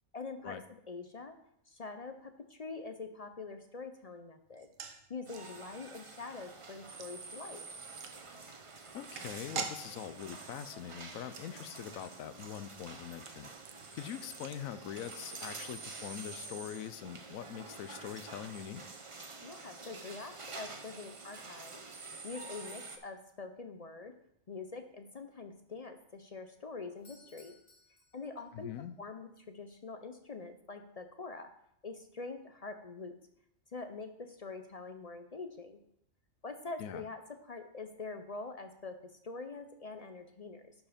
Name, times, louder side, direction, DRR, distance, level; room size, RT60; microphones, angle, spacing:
voice 1, 0.1-1.4 1.7-4.7 5.1-7.7 19.4-21.8 22.2-24.1 24.5-27.5 28.1-28.7 29.0-31.5 31.8-33.2 33.7-35.8 36.4-40.7, left 4 dB, 45° left, 7 dB, 0.5 m, -45 dB
sound 1, 4.5-15.8 16.0-16.1 16.4-16.6, right 6 dB, 70° right, 1.2 m, -48 dB
sound 2, 5.3-23.0, right 3 dB, 30° right, 0.7 m, -48 dB
voice 2, 8.9-13.5 13.9-18.8 28.5-29.0 36.8-37.0, left 10 dB, 85° left, 13 dB, 1.1 m, -43 dB
Doorbell, 27.0-28.8, left 2 dB, 60° left, 2.1 m, -63 dB
11.5 x 4.8 x 5.0 m, 0.74 s
omnidirectional pair, 1.4 m